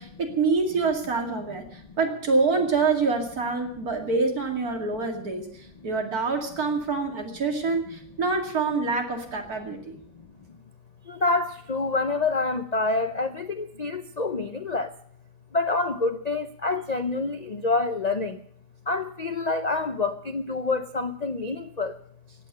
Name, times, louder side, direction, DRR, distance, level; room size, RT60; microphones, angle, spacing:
voice 1, 0.0-10.0, right 4 dB, 60° right, 3 dB, 2.9 m, -26 dB
voice 2, 11.0-15.0 15.5-18.4 18.9-22.0, left 3 dB, 90° left, 9 dB, 0.3 m, -27 dB
17.0 x 8.8 x 8.6 m, 0.66 s
omnidirectional pair, 1.8 m